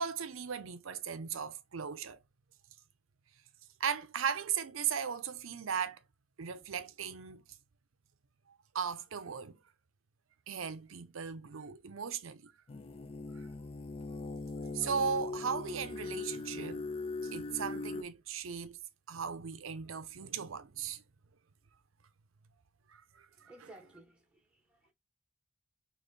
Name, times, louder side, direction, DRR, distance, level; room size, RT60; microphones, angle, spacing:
voice 1, 0.0-2.2 3.8-6.0 6.4-7.4 8.5-9.6 10.5-12.5 13.3-13.5 14.7-16.9 17.2-18.8 19.1-21.0 22.9-23.5, right 7 dB, 90° right, 0.6 m, -37 dB
sound 1, 12.7-18.0, left 3 dB, 30° left, 0.4 m, -40 dB
voice 2, 23.3-24.9, right 1 dB, 5° right, 0.9 m, -57 dB
4.3 x 3.0 x 3.1 m
head